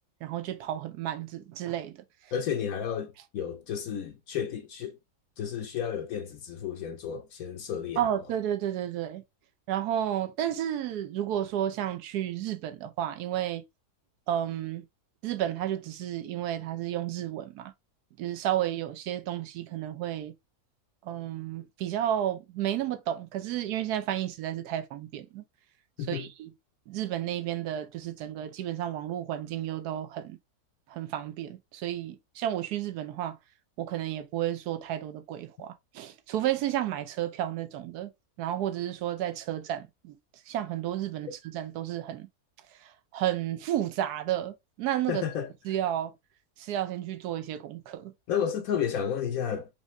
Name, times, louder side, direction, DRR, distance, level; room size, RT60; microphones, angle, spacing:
voice 1, 0.2-2.0 8.0-9.2 9.7-13.6 14.3-14.8 15.2-17.7 18.2-20.3 21.0-25.4 26.1-26.5 26.9-30.4 30.9-33.4 33.8-38.1 38.4-40.1 40.5-42.3 42.8-45.2 45.7-46.1 46.6-48.1, right 11 dB, 80° right, 1.2 m, -32 dB
voice 2, 2.3-5.0 5.4-8.1 26.0-26.3 45.1-45.5 48.3-49.7, left 8 dB, 70° left, 1.1 m, -32 dB
4.9 x 2.6 x 3.1 m
omnidirectional pair, 1.7 m